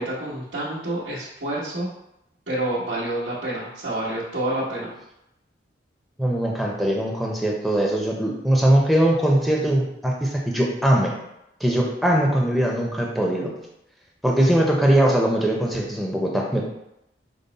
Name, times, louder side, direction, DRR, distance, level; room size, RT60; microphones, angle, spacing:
voice 1, 0.0-1.9 2.5-4.9, right 1 dB, 85° right, -11 dB, 1.1 m, -28 dB
voice 2, 6.2-11.1 11.6-13.5 14.2-16.6, right 1 dB, ahead, -2 dB, 0.5 m, -21 dB
5.3 x 2.0 x 3.9 m, 0.84 s
head